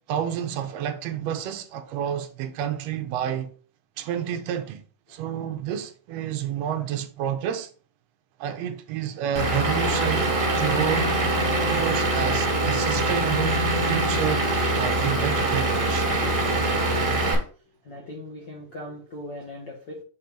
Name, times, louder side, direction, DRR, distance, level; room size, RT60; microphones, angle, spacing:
voice 1, 0.1-3.5 4.0-4.8 5.1-7.7 8.4-11.2 11.7-16.1, right 9 dB, 70° right, 1.7 m, -30 dB
Vehicle / Engine, 9.3-17.3, right 2 dB, 35° right, 1.4 m, -23 dB
voice 2, 17.0-17.4 17.8-20.0, left 1 dB, 75° left, 1.0 m, -39 dB
7.0 x 3.0 x 5.1 m
omnidirectional pair, 3.6 m